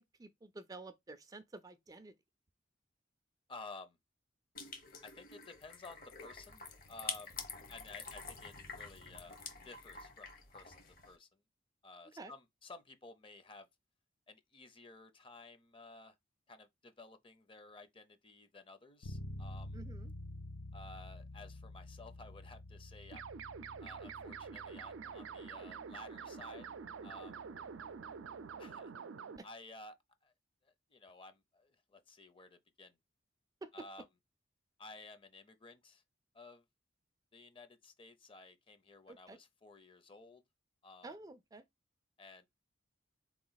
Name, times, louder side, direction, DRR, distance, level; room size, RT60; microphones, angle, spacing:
voice 1, 0.0-2.2 12.2-12.3 19.7-20.1 29.4-29.5 33.6-33.9 39.1-39.4 41.0-41.6, right 2 dB, 20° right, 0.4 m, -50 dB
voice 2, 3.5-4.0 5.0-7.4 7.7-9.4 9.6-11.4 11.8-13.7 14.3-16.2 16.5-19.8 20.7-23.3 23.8-26.7 27.0-27.4 28.6-28.9 29.4-30.3 30.6-33.0 33.7-34.0 34.8-36.0 36.3-36.6 37.3-40.4 40.8-41.1 42.2-42.5, left 3 dB, 30° left, 0.6 m, -54 dB
sound 1, 4.6-11.2, left 5 dB, 50° left, 1.0 m, -47 dB
Bass guitar, 19.0-28.7, left 1 dB, 90° left, 0.6 m, -50 dB
sound 2, 23.1-29.4, right 6 dB, 85° right, 0.4 m, -47 dB
4.1 x 3.0 x 3.9 m
head